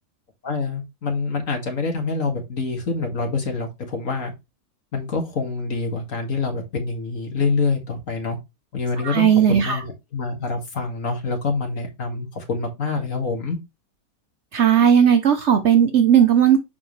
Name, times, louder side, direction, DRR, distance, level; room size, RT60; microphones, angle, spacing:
voice 1, 0.4-4.3 4.9-8.4 8.7-13.6, left 4 dB, 60° left, 2.2 m, -26 dB
voice 2, 9.0-9.8 14.5-16.6, right 8 dB, 60° right, 0.9 m, -16 dB
7.0 x 4.8 x 3.1 m
omnidirectional pair, 1.6 m